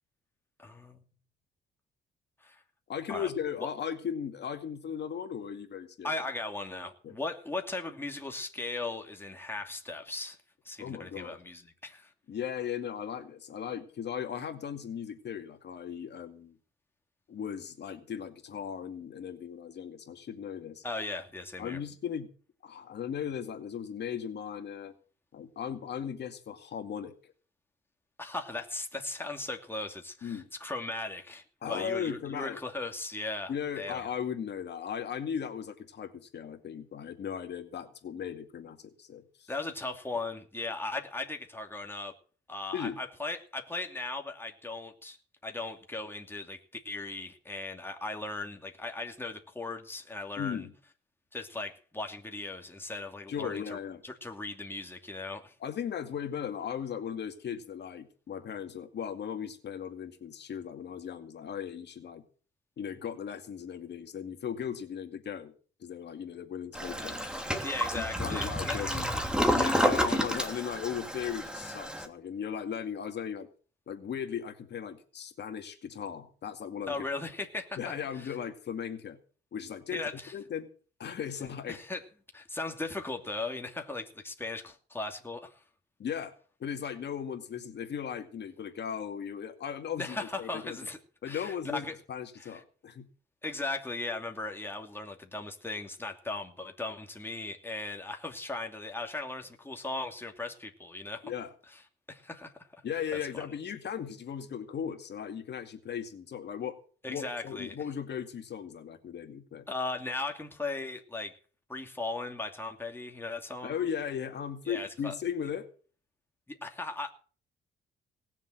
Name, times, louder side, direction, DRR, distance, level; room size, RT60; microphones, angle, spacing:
voice 1, 0.6-1.0 2.4-2.6 3.1-3.3 6.0-10.4 10.6-12.1 20.8-21.8 28.2-34.0 39.5-42.2 42.5-45.2 45.4-46.6 46.8-50.7 51.3-53.8 54.0-55.5 67.6-69.1 76.9-78.3 79.9-80.3 81.7-82.0 82.3-85.6 90.0-91.0 91.2-91.9 92.4-92.6 93.4-101.3 102.1-102.5 103.1-103.5 107.0-107.7 109.7-111.4 111.7-113.7 114.7-115.1 116.5-117.1, left 2 dB, 10° left, 3 dB, 2.6 m, -38 dB
voice 2, 2.9-6.1 7.0-7.2 10.8-11.4 12.3-16.6 17.3-20.8 21.6-22.3 22.6-24.9 25.3-27.1 30.2-30.5 31.6-32.6 33.5-39.5 42.7-43.0 50.4-50.7 53.3-54.0 55.6-62.2 62.8-65.5 65.8-67.2 67.9-69.1 69.5-73.5 73.9-76.9 77.8-79.2 79.5-80.0 80.3-80.7 81.0-81.8 86.0-86.3 86.6-90.9 91.2-93.1 101.2-101.5 102.8-106.8 107.1-109.6 113.6-115.7, left 8 dB, 60° left, 6 dB, 2.2 m, -37 dB
Toilet flush, 66.7-72.1, equal, 5° right, 2.8 m, -30 dB
19.0 x 7.4 x 7.8 m, 0.41 s
cardioid pair, 90°, 20 cm